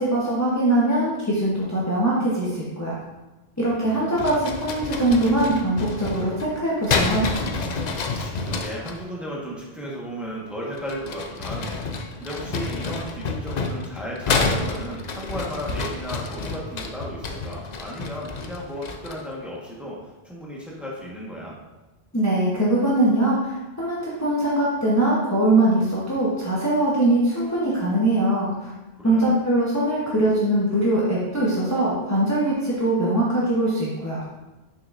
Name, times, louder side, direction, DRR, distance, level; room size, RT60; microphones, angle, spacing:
voice 1, 0.0-3.0 3.6-7.3 22.1-28.7 29.0-34.2, right 1 dB, 15° left, -8 dB, 1.0 m, -22 dB
voice 2, 3.5-4.4 8.1-20.0 20.2-21.6 28.9-29.4, equal, ahead, -5 dB, 1.2 m, -35 dB
sound 1, 4.1-9.0 10.7-19.3, left 4 dB, 50° left, 0.6 m, -29 dB
6.6 x 5.9 x 2.5 m, 1.1 s
omnidirectional pair, 1.1 m